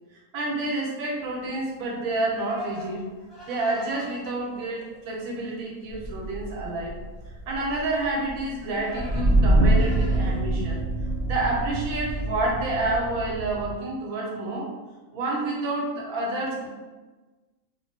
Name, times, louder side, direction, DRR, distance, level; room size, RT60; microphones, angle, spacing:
voice 1, 0.3-3.0 3.4-6.9 7.5-10.8 11.2-14.7 15.1-16.7, right 2 dB, 80° right, -2 dB, 1.1 m, -29 dB
Livestock farm animals working animals, 1.2-12.2, right 1 dB, ahead, 0.8 m, -46 dB
sound 1, 5.9-13.8, right 1 dB, 60° right, 0.8 m, -25 dB
2.4 x 2.1 x 2.6 m, 1.3 s
omnidirectional pair, 1.5 m